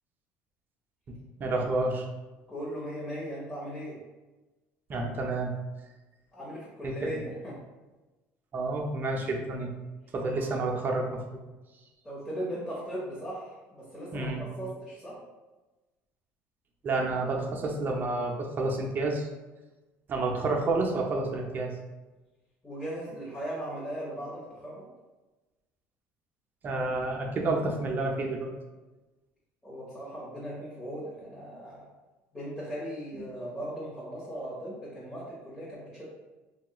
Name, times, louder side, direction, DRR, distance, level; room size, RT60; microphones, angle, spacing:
voice 1, 1.1-2.1 4.9-5.5 6.8-6.9 8.5-9.7 10.1-11.2 14.1-14.4 16.8-19.3 20.1-21.7 26.6-28.5 33.2-33.3, right 2 dB, 35° right, 1 dB, 0.6 m, -29 dB
voice 2, 2.5-4.0 6.3-7.6 10.3-10.5 12.0-15.2 22.6-24.9 29.6-31.9 32.3-36.0, equal, 15° left, -8 dB, 1.0 m, -38 dB
3.0 x 2.3 x 2.9 m, 1.1 s
cardioid pair, 110°, 6 cm